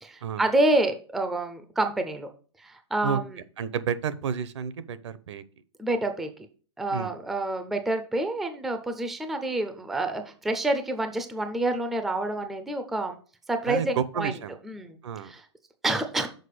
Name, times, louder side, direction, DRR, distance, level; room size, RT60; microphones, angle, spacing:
voice 1, 0.0-2.3 2.6-3.3 5.8-6.3 6.8-13.2 13.5-14.3 14.6-15.0 15.2-15.4 15.8-16.3, right 2 dB, ahead, 7 dB, 0.3 m, -28 dB
voice 2, 3.6-5.4 6.9-7.1 13.7-14.5 15.0-15.3, right 7 dB, 80° right, 15 dB, 0.8 m, -30 dB
6.6 x 4.6 x 5.0 m, 0.40 s
supercardioid pair, 170°, 15 cm